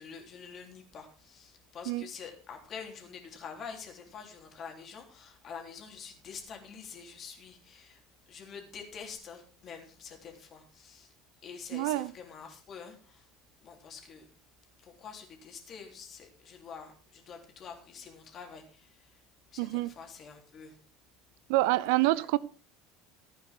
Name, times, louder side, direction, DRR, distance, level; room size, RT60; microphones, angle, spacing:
voice 1, 0.0-11.1 11.4-13.3 13.6-14.3 14.8-19.2 19.5-20.8 22.1-22.3, left 6 dB, 40° left, 3.6 m, -47 dB
voice 2, 11.7-12.1 19.6-19.9 21.5-22.4, right 18 dB, 60° right, 0.5 m, -26 dB
15.0 x 9.3 x 4.7 m
figure-of-eight pair, 70°, 0 cm